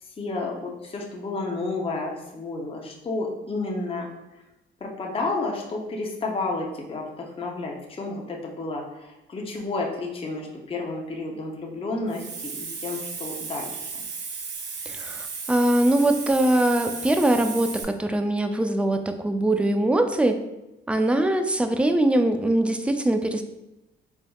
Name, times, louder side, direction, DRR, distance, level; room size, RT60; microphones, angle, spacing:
voice 1, 0.2-4.1 4.8-13.9, left 3 dB, 30° left, -1 dB, 0.7 m, -31 dB
Hiss, 12.1-17.8, right 5 dB, 65° right, 0.7 m, -35 dB
voice 2, 14.9-20.4 20.9-23.4, right 1 dB, 5° right, 7 dB, 0.3 m, -22 dB
3.9 x 3.5 x 2.3 m, 0.95 s
cardioid pair, 90°, 20 cm